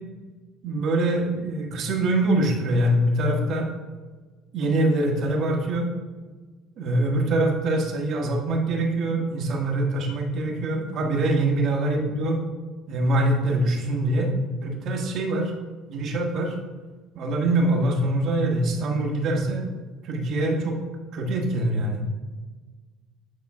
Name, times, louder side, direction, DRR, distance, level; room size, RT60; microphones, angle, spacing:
voice 1, 0.6-3.7 4.5-5.9 6.8-12.4 12.9-14.3 14.6-15.5 15.9-16.6 17.1-19.7 20.0-20.8 21.1-22.0, right 1 dB, 55° right, 1 dB, 1.2 m, -24 dB
8.5 x 3.7 x 3.6 m, 1.3 s
hypercardioid pair, 60°, 0 cm